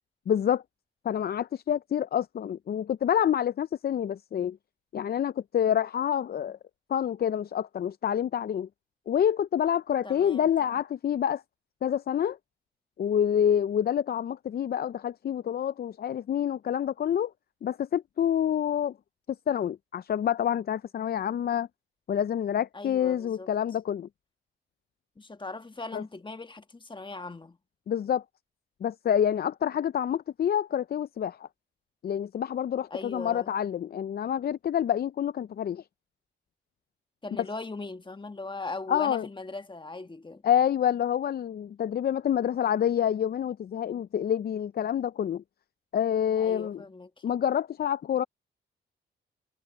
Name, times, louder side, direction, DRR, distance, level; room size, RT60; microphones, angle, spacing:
voice 1, 0.3-0.6 1.0-4.6 4.9-6.6 6.9-8.7 9.1-11.4 11.8-12.4 13.0-17.3 17.6-18.9 19.5-21.7 22.1-24.1 25.9-26.0 27.9-28.2 28.8-31.5 32.0-35.8 38.9-39.3 40.4-45.4 45.9-46.8 47.2-48.2, left 9 dB, 50° left, 0.5 m, -27 dB
voice 2, 10.0-10.5 22.7-23.5 25.2-27.6 32.9-33.5 37.2-40.4 46.4-47.1, left 3 dB, 25° left, 1.5 m, -39 dB
cardioid pair, 70°, 21 cm